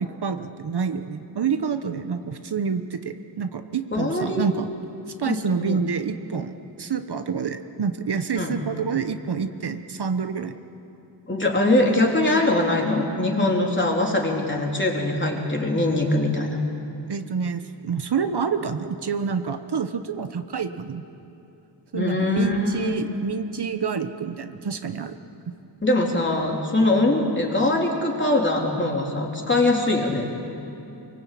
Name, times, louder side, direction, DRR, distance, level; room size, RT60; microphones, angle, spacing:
voice 1, 0.0-4.7 5.2-10.5 17.1-21.0 21.9-25.2, right 6 dB, 60° right, 8 dB, 1.1 m, -28 dB
voice 2, 3.9-4.4 5.3-5.8 8.4-8.6 11.3-16.6 21.9-23.0 25.8-30.3, left 2 dB, 25° left, 0 dB, 3.7 m, -22 dB
24.0 x 23.0 x 8.5 m, 2.9 s
wide cardioid pair, 115°, 44 cm